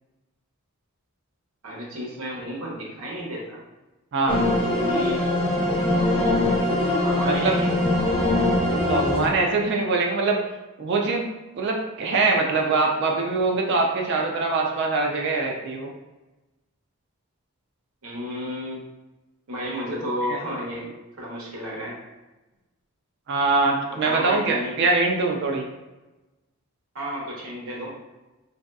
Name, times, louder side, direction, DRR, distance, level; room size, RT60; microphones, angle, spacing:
voice 1, 1.6-3.6 4.5-5.2 7.0-7.7 18.0-18.8 19.5-20.9 21.2-22.0 23.9-24.7 26.9-27.9, equal, 70° right, -3 dB, 0.9 m, -32 dB
sound 1, 4.3-9.3, left 1 dB, 20° left, 0.5 m, -22 dB
voice 2, 7.2-7.6 8.7-10.4 10.8-11.2 11.6-15.9 20.3-20.4 23.3-25.7, right 3 dB, 50° right, 0 dB, 0.3 m, -23 dB
3.0 x 2.7 x 2.2 m, 1.1 s
head